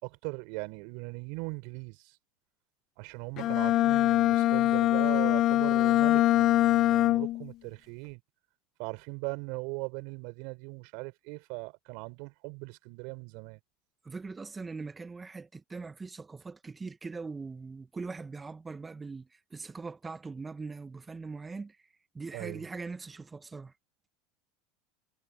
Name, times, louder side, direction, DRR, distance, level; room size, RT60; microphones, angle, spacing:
voice 1, 0.0-2.1 3.0-8.2 8.8-13.6 22.3-22.6, right 32 dB, 65° right, 5.6 m, -39 dB
Bowed string instrument, 3.4-7.5, left 15 dB, 50° left, 0.8 m, -23 dB
voice 2, 14.0-21.8 22.1-23.7, right 4 dB, 20° right, 1.9 m, -41 dB
hypercardioid pair, 85°, 0 cm